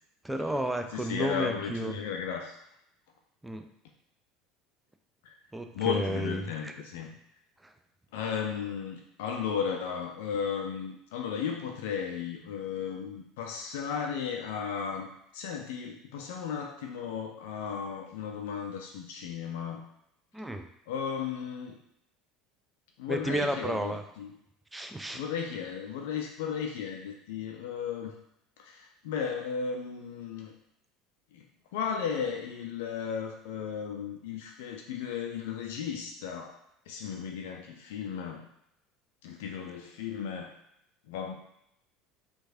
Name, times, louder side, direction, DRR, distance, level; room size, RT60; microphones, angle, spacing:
voice 1, 0.2-1.9 3.4-3.7 5.5-6.7 20.3-20.7 23.1-24.0 24.7-25.2, right 1 dB, 10° right, 6 dB, 0.4 m, -32 dB
voice 2, 0.9-2.6 5.7-7.1 8.1-19.8 20.9-21.8 23.0-24.4 25.1-28.2 28.6-30.5 31.3-31.4 31.7-36.6 36.9-38.5 39.2-40.5 41.1-41.4, left 7 dB, 65° left, 2 dB, 0.4 m, -35 dB
4.6 x 2.3 x 2.6 m, 0.77 s
figure-of-eight pair, 70°, 0 cm